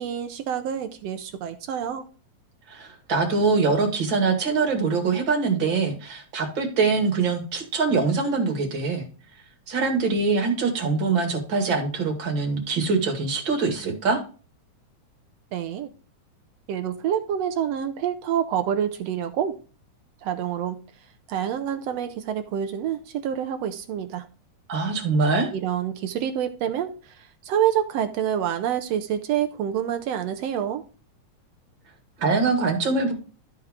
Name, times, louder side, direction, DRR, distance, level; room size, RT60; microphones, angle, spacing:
voice 1, 0.0-2.0 15.5-15.9 16.7-19.6 20.2-20.8 21.3-24.3 25.5-30.8, right 9 dB, 75° right, 7 dB, 1.6 m, -27 dB
voice 2, 2.7-9.1 9.7-14.2 24.7-25.5 32.2-33.1, right 4 dB, 40° right, 2 dB, 2.5 m, -23 dB
13.5 x 4.6 x 3.6 m, 0.38 s
omnidirectional pair, 3.5 m